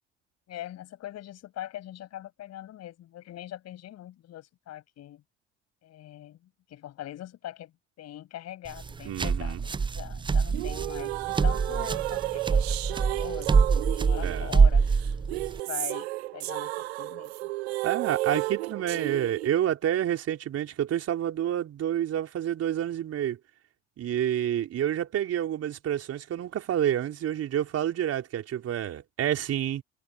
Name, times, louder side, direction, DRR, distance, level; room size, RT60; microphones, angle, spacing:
voice 1, 0.5-5.2 5.8-7.7 8.0-13.5 14.0-14.9 15.7-17.5, left 13 dB, 50° left, 7.4 m, -42 dB
sound 1, 8.7-15.6, right 5 dB, 15° right, 0.6 m, -24 dB
voice 2, 9.0-9.6 14.2-14.5 17.8-23.4 24.0-29.8, right 11 dB, 45° right, 4.4 m, -29 dB
sound 2, 10.5-19.5, right 19 dB, 70° right, 1.6 m, -33 dB
figure-of-eight pair, 55°, 32 cm